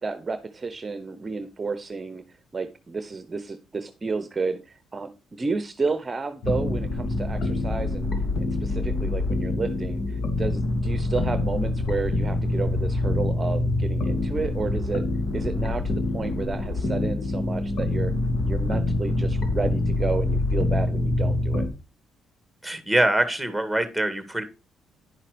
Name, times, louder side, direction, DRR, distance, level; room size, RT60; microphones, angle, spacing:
voice 1, 0.0-8.1 8.4-15.0 15.3-18.1 18.4-21.7, right 4 dB, 30° right, 11 dB, 0.8 m, -31 dB
sound 1, 6.4-21.7, left 2 dB, 55° left, 2.6 m, -25 dB
voice 2, 22.6-24.4, right 1 dB, ahead, 9 dB, 2.1 m, -24 dB
10.5 x 5.6 x 5.1 m, 0.30 s
cardioid pair, 90°, 0 cm